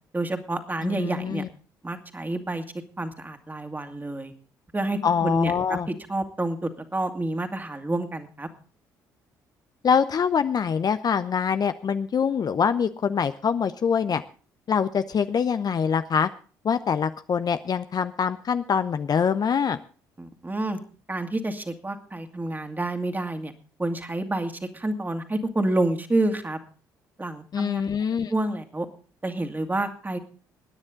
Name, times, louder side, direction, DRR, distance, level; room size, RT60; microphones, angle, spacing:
voice 1, 0.1-1.4 1.8-2.6 3.0-4.3 4.7-8.5 20.2-20.8 21.1-23.5 23.8-26.6 27.2-27.8 28.3-28.9 29.2-30.2, right 2 dB, 20° right, 5 dB, 2.3 m, -28 dB
voice 2, 0.8-1.5 5.0-5.9 9.8-14.2 14.7-16.3 16.6-19.8 27.5-28.3, left 7 dB, 45° left, 11 dB, 0.7 m, -24 dB
22.0 x 9.8 x 3.8 m, 0.38 s
hypercardioid pair, 50°, 10 cm